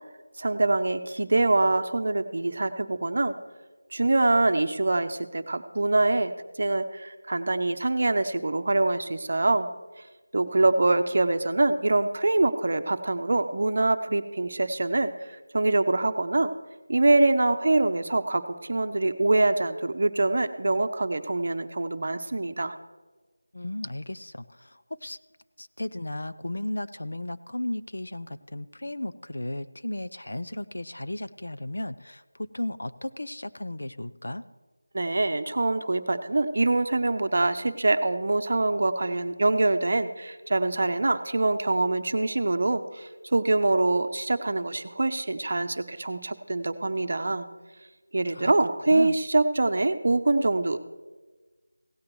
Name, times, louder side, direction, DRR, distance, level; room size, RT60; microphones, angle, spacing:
voice 1, 0.4-3.4 3.9-9.7 10.3-16.5 16.9-22.7 34.9-47.5 48.1-50.8, right 2 dB, 45° right, 9 dB, 0.8 m, -24 dB
voice 2, 23.5-25.2 25.6-32.2 32.5-34.4 48.3-48.5 48.9-49.2, left 1 dB, 75° left, 12 dB, 0.6 m, -35 dB
16.5 x 15.5 x 3.1 m, 1.3 s
figure-of-eight pair, 175°, 0 cm